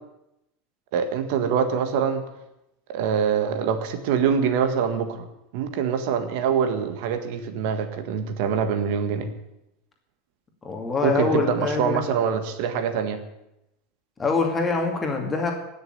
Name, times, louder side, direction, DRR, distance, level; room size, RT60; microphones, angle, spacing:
voice 1, 0.9-2.2 2.9-5.3 5.5-9.3 11.0-13.2, right 7 dB, 60° right, 8 dB, 1.7 m, -24 dB
voice 2, 10.6-12.0 14.2-15.5, left 4 dB, 15° left, 2 dB, 2.4 m, -24 dB
17.0 x 6.9 x 9.5 m, 0.85 s
supercardioid pair, 170°, 0 cm